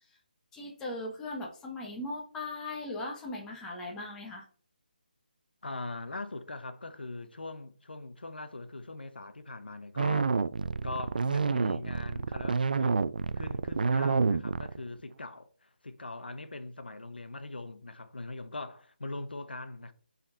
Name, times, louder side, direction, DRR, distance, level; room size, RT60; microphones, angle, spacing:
voice 1, 0.5-4.4, left 2 dB, 10° left, 1.2 m, -38 dB
voice 2, 5.6-10.3 10.8-13.1 13.4-19.9, left 2 dB, 85° left, 0.9 m, -41 dB
sound 1, 10.0-14.9, right 5 dB, 60° right, 0.4 m, -28 dB
7.4 x 4.2 x 3.9 m
figure-of-eight pair, 160°, 5 cm